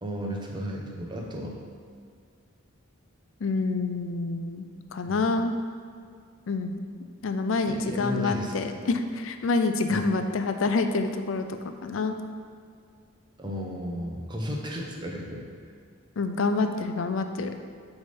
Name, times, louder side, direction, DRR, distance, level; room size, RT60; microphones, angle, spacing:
voice 1, 0.0-1.6 5.1-5.2 7.7-8.7 9.9-10.1 13.4-15.5, equal, 20° right, -1 dB, 0.9 m, -34 dB
voice 2, 3.4-4.7 4.9-5.5 6.5-6.8 7.2-11.5 11.8-12.2 16.2-17.5, left 3 dB, 65° left, 7 dB, 0.4 m, -27 dB
8.2 x 3.5 x 5.2 m, 2.1 s
head